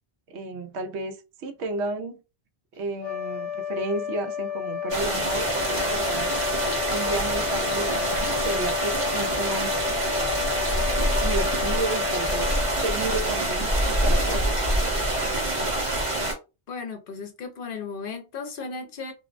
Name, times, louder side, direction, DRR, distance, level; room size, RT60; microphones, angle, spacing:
voice 1, 0.3-2.2 2.7-6.3 6.9-9.8 11.2-14.6, right 2 dB, 90° right, 0.9 m, -32 dB
sound 1, 2.9-13.6, left 10 dB, 35° left, 1.0 m, -32 dB
sound 2, 4.9-16.3, right 1 dB, 35° right, 0.8 m, -25 dB
voice 2, 16.7-19.1, left 4 dB, 60° left, 0.7 m, -35 dB
2.5 x 2.0 x 2.4 m
omnidirectional pair, 1.1 m